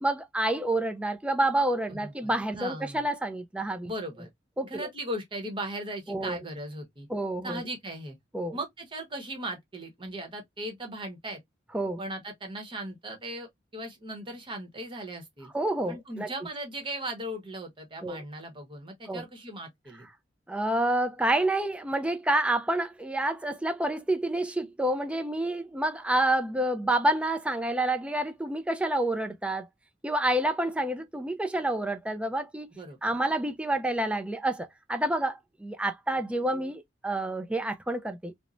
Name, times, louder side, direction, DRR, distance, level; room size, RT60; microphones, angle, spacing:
voice 1, 0.0-3.9 4.6-4.9 6.1-6.4 7.1-7.6 8.3-8.6 11.7-12.0 15.5-16.3 18.0-18.2 19.1-19.2 20.5-29.7 30.0-32.7 33.0-38.3, right 1 dB, 5° right, 0.3 m, -28 dB
voice 2, 1.9-3.1 3.8-4.3 4.6-7.1 7.4-8.2 8.5-11.4 12.0-15.5 15.9-20.1 32.7-33.0, right 1 dB, 25° right, 0.9 m, -38 dB
3.0 x 2.1 x 2.4 m
head